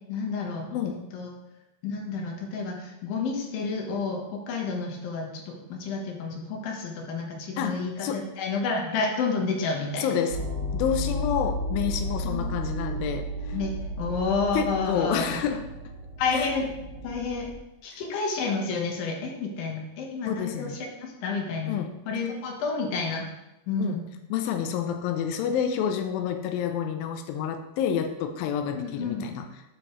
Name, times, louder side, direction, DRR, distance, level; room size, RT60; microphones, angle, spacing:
voice 1, 0.1-1.3 1.8-10.1 12.3-12.5 13.5-15.4 16.2-16.7 17.0-17.5 17.8-23.2 23.7-24.0 28.7-29.2, left 4 dB, 70° left, 0 dB, 2.7 m, -30 dB
voice 2, 7.6-8.2 10.0-10.4 10.7-13.6 14.5-15.6 16.3-16.5 20.2-20.8 21.7-21.9 23.8-24.0 24.3-29.4, left 8 dB, 85° left, 6 dB, 2.0 m, -29 dB
sound 1, 10.3-17.6, equal, 15° left, 2.2 m, -33 dB
7.9 x 7.1 x 3.0 m, 0.97 s
omnidirectional pair, 4.7 m